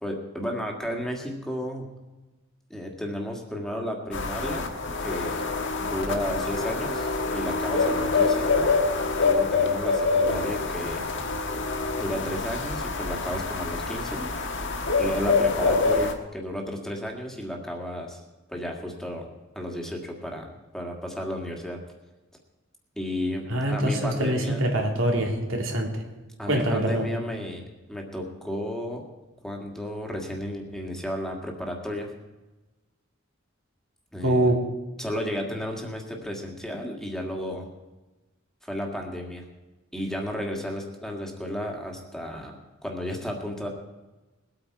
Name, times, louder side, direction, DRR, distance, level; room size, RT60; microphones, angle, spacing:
voice 1, 0.0-1.9 2.7-4.7 5.0-5.5 5.8-8.5 9.2-11.0 11.9-14.3 15.0-18.2 18.5-19.3 19.6-20.5 20.7-21.8 23.0-24.7 26.4-27.6 27.9-29.1 29.4-32.1 34.1-34.5 35.0-37.7 38.6-39.4 39.9-43.7, equal, ahead, 1 dB, 1.9 m, -33 dB
sound 1, 4.1-16.1, left 4 dB, 65° left, 1.5 m, -26 dB
voice 2, 23.5-26.0 26.5-27.0 34.2-34.6, right 1 dB, 80° right, 1 dB, 2.8 m, -24 dB
21.0 x 8.8 x 4.7 m, 1.1 s
head